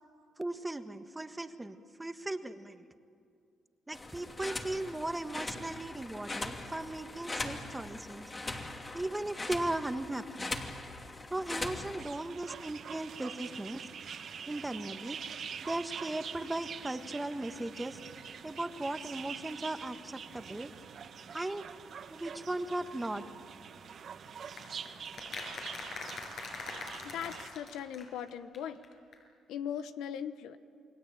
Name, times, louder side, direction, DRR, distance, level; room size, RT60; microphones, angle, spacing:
voice 1, 0.4-2.9 3.9-8.3 8.9-10.5 11.3-13.8 14.5-15.2 15.6-18.0 18.4-20.7 21.3-21.7 22.1-23.2, right 1 dB, 15° right, 8 dB, 1.4 m, -37 dB
sound 1, 3.9-12.0, left 2 dB, 25° left, 2.7 m, -41 dB
sound 2, 12.0-27.5, right 7 dB, 60° right, 1.6 m, -45 dB
sound 3, 24.6-28.6 28.8-28.9 29.1-29.2, left 3 dB, 60° left, 6.2 m, -43 dB
voice 2, 27.0-28.8 29.5-30.6, left 9 dB, 85° left, 11 dB, 1.0 m, -39 dB
29.0 x 20.5 x 8.9 m, 2.3 s
cardioid pair, 90°, 0 cm